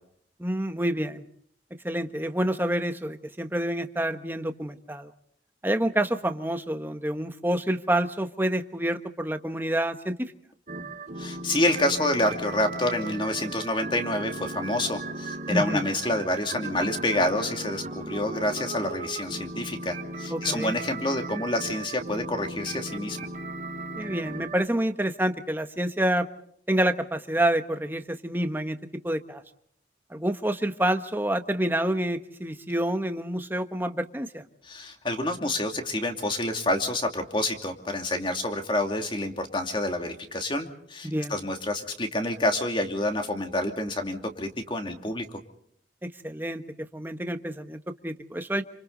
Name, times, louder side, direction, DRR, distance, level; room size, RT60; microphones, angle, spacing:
voice 1, 0.4-1.2 1.8-5.1 5.6-10.3 15.5-15.8 20.3-20.7 24.0-26.3 26.7-28.8 29.0-29.4 30.1-34.4 41.0-41.3 46.0-48.6, right 1 dB, 10° right, 7 dB, 1.3 m, -28 dB
sound 1, 10.7-24.6, right 2 dB, 45° right, 3.2 m, -37 dB
voice 2, 11.2-23.2 34.6-45.4, left 1 dB, 30° left, 4 dB, 2.7 m, -28 dB
29.0 x 26.5 x 4.0 m, 0.65 s
head